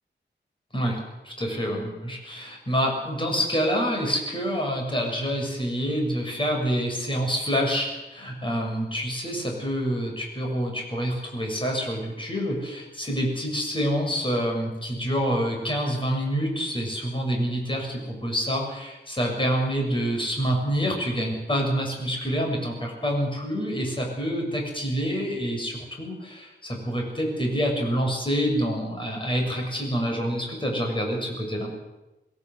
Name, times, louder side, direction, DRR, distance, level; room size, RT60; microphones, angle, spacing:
voice 1, 1.2-31.7, equal, 25° left, 0 dB, 7.1 m, -27 dB
23.0 x 16.5 x 8.3 m, 1.0 s
wide cardioid pair, 125°, 19 cm